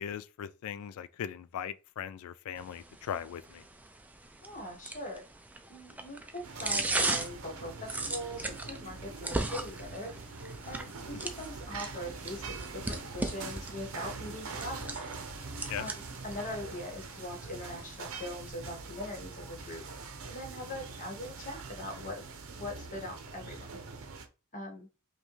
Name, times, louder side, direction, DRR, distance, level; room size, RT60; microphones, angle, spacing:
voice 1, 0.0-3.6 15.7-15.9, left 8 dB, 70° left, 0.3 m, -39 dB
sound 1, 2.6-18.5, right 2 dB, 5° right, 0.3 m, -39 dB
voice 2, 4.4-5.2 5.7-10.1 10.7-14.9 15.8-19.8 20.3-22.2 22.5-23.7 24.5-24.9, left 1 dB, 35° left, 1.3 m, -41 dB
sound 2, 6.4-24.3, right 4 dB, 65° right, 0.7 m, -43 dB
5.2 x 2.3 x 3.2 m
head